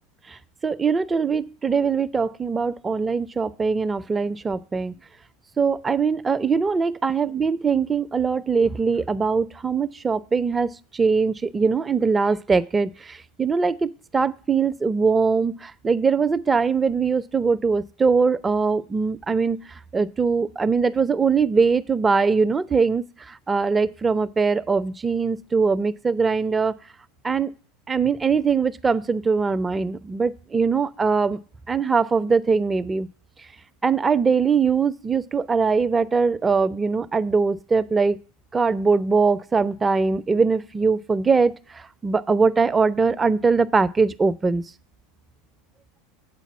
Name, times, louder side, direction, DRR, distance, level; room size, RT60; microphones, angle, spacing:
voice 1, 0.6-5.0 5.6-19.6 19.9-26.8 27.2-27.5 27.9-31.4 31.7-33.1 33.8-38.2 38.5-44.6, right 5 dB, 20° right, 15 dB, 0.4 m, -22 dB
8.1 x 4.0 x 7.0 m, 0.38 s
figure-of-eight pair, 80°, 0 cm